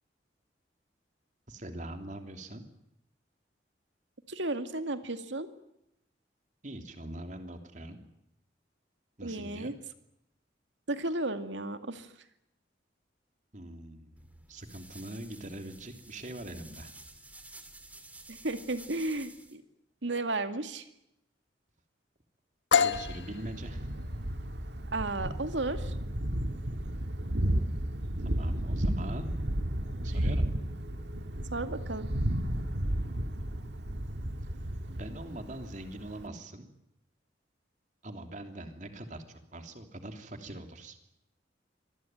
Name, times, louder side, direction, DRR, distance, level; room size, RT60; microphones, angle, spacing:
voice 1, 1.5-2.6 6.6-8.0 9.2-9.7 13.5-16.9 22.8-23.9 28.2-29.3 30.0-30.5 34.4-36.7 38.0-41.0, right 1 dB, 45° right, 6 dB, 3.1 m, -43 dB
voice 2, 4.3-5.5 9.2-9.7 10.9-12.1 18.3-19.6 20.0-20.9 24.9-26.0 31.5-32.1, right 2 dB, 85° right, 9 dB, 2.2 m, -33 dB
sound 1, 14.2-19.5, right 2 dB, 10° right, 2.5 m, -51 dB
sound 2, 22.7-30.3, left 6 dB, 80° left, 1.2 m, -34 dB
Thunder, 22.9-36.3, right 1 dB, 70° right, 1.7 m, -33 dB
25.5 x 20.0 x 9.3 m, 0.82 s
head